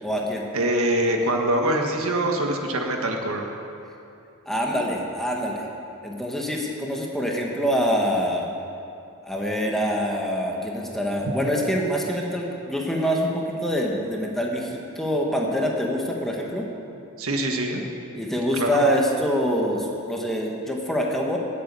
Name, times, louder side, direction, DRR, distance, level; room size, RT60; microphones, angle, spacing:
voice 1, 0.0-0.5 4.4-5.6 6.0-8.5 9.2-16.7 18.1-21.4, equal, ahead, -2 dB, 1.6 m, -25 dB
voice 2, 0.5-3.5 17.2-17.8 18.6-18.8, right 1 dB, 90° right, 2 dB, 1.6 m, -24 dB
18.0 x 8.4 x 6.9 m, 2.7 s
head